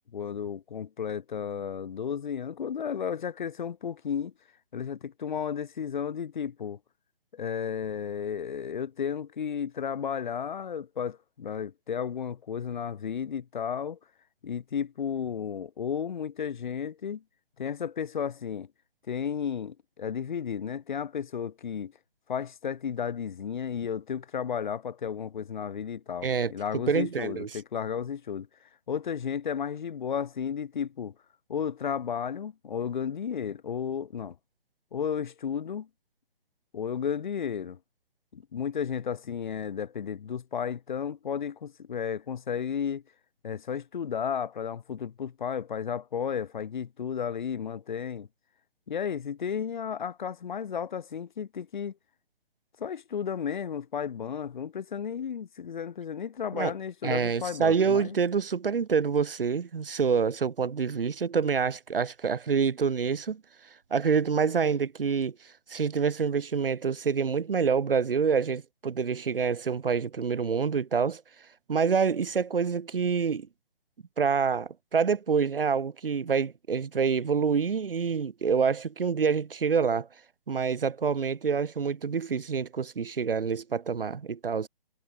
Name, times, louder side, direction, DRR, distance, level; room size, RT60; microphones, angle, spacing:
voice 1, 0.1-4.3 4.7-6.8 7.3-14.0 14.4-17.2 17.6-18.7 19.1-21.9 22.3-28.5 28.9-31.1 31.5-34.4 34.9-35.9 36.7-37.8 38.3-43.0 43.4-48.3 48.9-51.9 52.8-58.2, left 7 dB, 50° left, 3.5 m, -33 dB
voice 2, 26.9-27.5 56.5-56.7 57.0-63.4 63.9-65.3 65.7-71.2 71.7-73.5 74.2-80.1 80.5-84.7, right 6 dB, 65° right, 4.3 m, -27 dB
hypercardioid pair, 160°, 30 cm